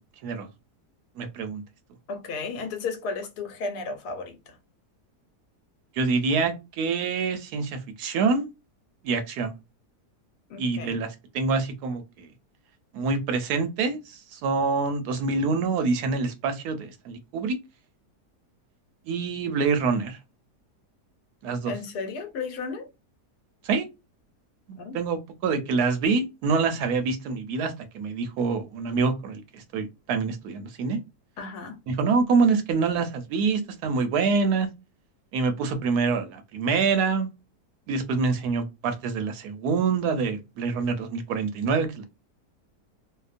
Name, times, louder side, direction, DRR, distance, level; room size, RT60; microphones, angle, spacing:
voice 1, 1.2-1.6 6.0-8.5 9.0-9.5 10.6-11.1 11.3-12.3 12.9-17.6 19.1-20.2 21.4-21.7 23.6-23.9 24.7-31.0 31.9-34.7 35.3-37.3 37.9-42.0, right 4 dB, 75° right, 1.0 m, -26 dB
voice 2, 2.1-4.6 10.5-11.0 21.7-22.9 24.7-25.0 31.4-31.8, left 4 dB, 75° left, 1.1 m, -34 dB
2.8 x 2.0 x 2.4 m
omnidirectional pair, 1.8 m